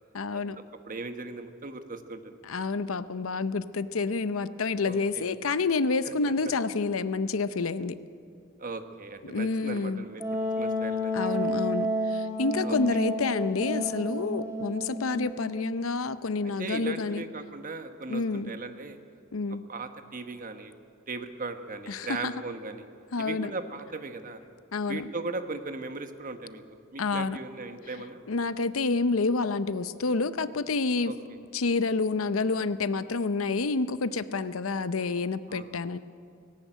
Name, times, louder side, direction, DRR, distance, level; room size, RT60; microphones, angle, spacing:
voice 1, 0.1-0.6 2.4-8.0 9.2-10.0 11.1-17.2 18.1-18.5 19.3-19.6 21.9-22.3 23.1-23.5 24.7-25.0 27.0-27.4 28.3-31.1 31.5-36.0, left 3 dB, 80° left, 14 dB, 0.7 m, -28 dB
voice 2, 0.8-2.4 4.8-5.2 6.0-6.1 8.6-10.2 10.6-11.4 12.6-13.0 16.6-19.0 19.7-20.7 21.1-22.8 23.2-24.4 24.9-26.6 26.9-28.2 31.1-31.2 35.5-35.7, right 3 dB, 40° right, 8 dB, 1.2 m, -38 dB
Wind instrument woodwind instrument, 10.2-15.7, equal, 15° right, 2.9 m, -31 dB
18.5 x 17.5 x 9.1 m, 2.4 s
head